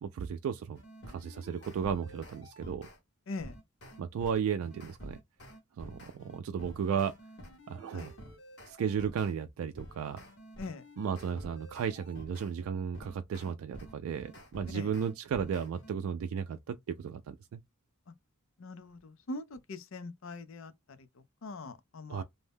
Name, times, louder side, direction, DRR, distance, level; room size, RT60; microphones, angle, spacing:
voice 1, 0.0-0.8 1.1-2.9 4.0-5.2 5.8-7.1 7.7-8.1 8.7-10.2 11.0-17.6 22.1-22.2, right 7 dB, 85° right, 0.3 m, -34 dB
sound 1, 0.8-3.0 3.4-9.3 9.8-12.5 12.9-15.9, equal, 55° left, 1.2 m, -49 dB
voice 2, 18.6-20.7 21.4-22.2, left 2 dB, 70° left, 0.5 m, -42 dB
2.6 x 2.1 x 3.4 m
head